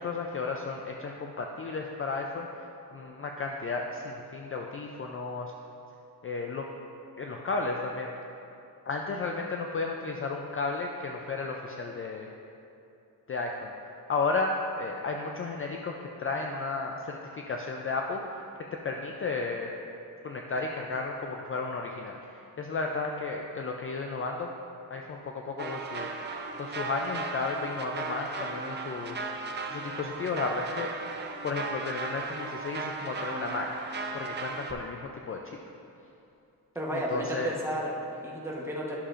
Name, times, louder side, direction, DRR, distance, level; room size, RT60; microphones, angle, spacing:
voice 1, 0.0-5.5 6.2-6.7 7.2-8.1 8.9-12.3 13.3-13.7 14.1-18.4 18.7-19.8 20.2-24.5 24.9-29.3 29.7-31.1 31.4-35.4 36.9-37.6, left 3 dB, 35° left, 1 dB, 0.4 m, -33 dB
sound 1, 25.6-34.7, right 4 dB, 30° right, 0.5 m, -36 dB
voice 2, 36.7-39.0, equal, 5° right, -4 dB, 1.0 m, -33 dB
11.0 x 6.6 x 2.5 m, 2.8 s
wide cardioid pair, 155°, 38 cm